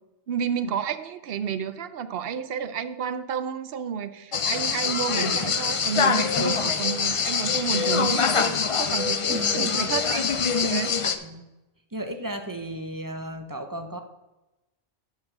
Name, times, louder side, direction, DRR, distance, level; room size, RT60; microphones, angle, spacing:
voice 1, 0.3-10.9, right 7 dB, 60° right, 13 dB, 0.8 m, -31 dB
sound 1, 4.3-11.1, left 6 dB, 45° left, 0.4 m, -24 dB
voice 2, 9.3-9.7 10.5-10.6 11.2-11.5 11.9-14.0, right 1 dB, 20° right, 6 dB, 0.6 m, -34 dB
9.0 x 5.6 x 6.0 m, 1.0 s
omnidirectional pair, 1.2 m